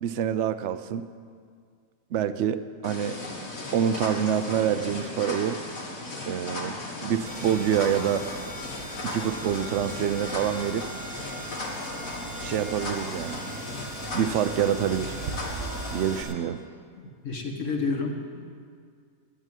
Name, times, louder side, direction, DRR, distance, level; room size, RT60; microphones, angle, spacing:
voice 1, 0.0-1.0 2.1-3.2 3.7-5.6 6.3-8.2 9.0-10.8 12.4-13.4 14.1-15.2 15.9-16.6, right 9 dB, 65° right, 12 dB, 0.9 m, -26 dB
sound 1, 2.8-16.2, left 2 dB, 80° left, 2.5 m, -36 dB
sound 2, 7.2-15.9, right 6 dB, 80° right, 1.3 m, -42 dB
sound 3, 7.3-16.3, right 2 dB, 30° right, 0.9 m, -43 dB
voice 2, 17.2-18.5, left 4 dB, 65° left, 1 dB, 1.8 m, -29 dB
12.0 x 9.6 x 9.1 m, 2.1 s
omnidirectional pair, 1.4 m